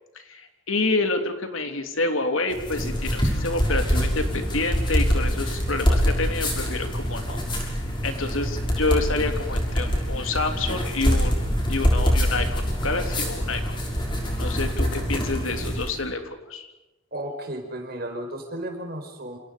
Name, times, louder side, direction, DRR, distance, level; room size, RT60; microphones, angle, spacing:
voice 1, 0.1-11.4 11.7-13.7 14.4-16.7, left 3 dB, 75° left, 6 dB, 3.1 m, -28 dB
sound 1, 2.5-16.0, equal, 25° left, 6.2 m, -25 dB
voice 2, 17.1-19.4, right 1 dB, 45° right, 4 dB, 5.0 m, -34 dB
28.0 x 27.5 x 5.3 m, 1.0 s
head